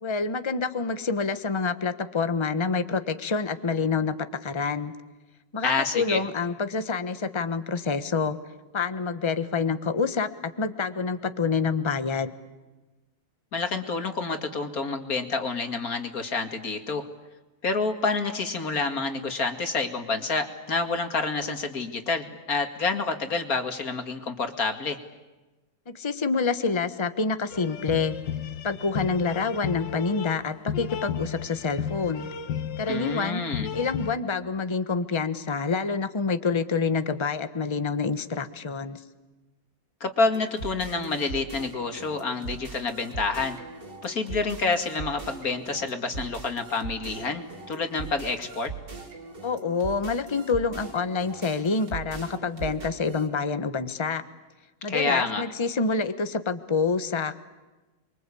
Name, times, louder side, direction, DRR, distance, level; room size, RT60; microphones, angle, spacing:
voice 1, 0.0-4.1 4.4-4.9 5.5-8.4 8.7-12.3 25.9-28.2 28.6-32.3 32.8-33.5 33.7-39.0 49.4-54.2 54.8-57.3, left 4 dB, 20° left, 10 dB, 1.0 m, -27 dB
voice 2, 5.6-6.2 13.5-17.1 17.6-25.0 32.9-33.7 40.0-43.6 44.0-48.7 54.9-55.4, left 4 dB, 50° left, 6 dB, 2.6 m, -28 dB
sound 1, 27.5-34.2, left 8 dB, 70° left, 1.8 m, -33 dB
sound 2, 40.3-53.3, right 4 dB, 65° right, 4.4 m, -40 dB
29.0 x 23.5 x 8.5 m, 1.1 s
omnidirectional pair, 2.1 m